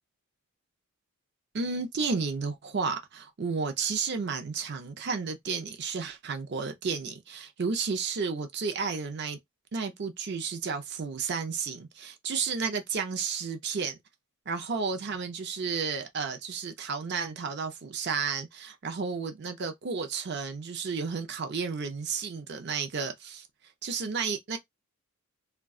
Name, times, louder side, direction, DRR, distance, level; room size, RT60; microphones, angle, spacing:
voice 1, 1.5-9.4 9.7-14.0 14.5-23.5 23.8-24.6, right 5 dB, 50° right, 0.5 m, -32 dB
2.3 x 2.2 x 3.6 m
head